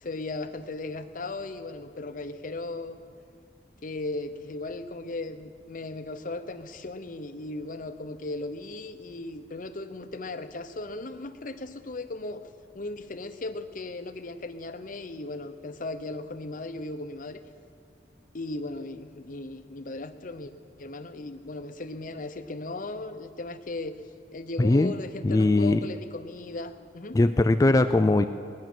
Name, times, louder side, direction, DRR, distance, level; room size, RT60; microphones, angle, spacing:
voice 1, 0.0-3.0 3.8-12.5 12.7-17.4 18.3-20.5 20.8-24.0 24.3-27.2, left 2 dB, 50° left, 8 dB, 0.8 m, -37 dB
voice 2, 24.6-24.9 25.2-25.9 27.1-28.2, left 2 dB, 20° left, 9 dB, 0.3 m, -20 dB
19.5 x 10.5 x 6.1 m, 2.4 s
head